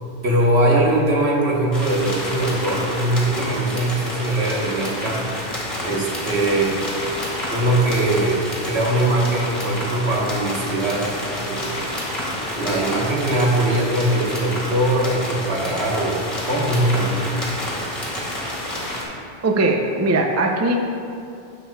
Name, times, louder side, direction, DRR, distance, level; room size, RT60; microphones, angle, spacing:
voice 1, 0.2-5.3 5.8-6.8 7.5-11.8 12.5-17.4, right 1 dB, 90° right, -3 dB, 1.5 m, -21 dB
sound 1, 1.7-19.0, left 1 dB, 30° left, 1.8 m, -29 dB
voice 2, 19.4-20.8, right 2 dB, 25° right, 3 dB, 0.3 m, -19 dB
11.0 x 7.1 x 2.3 m, 2.5 s
omnidirectional pair, 1.1 m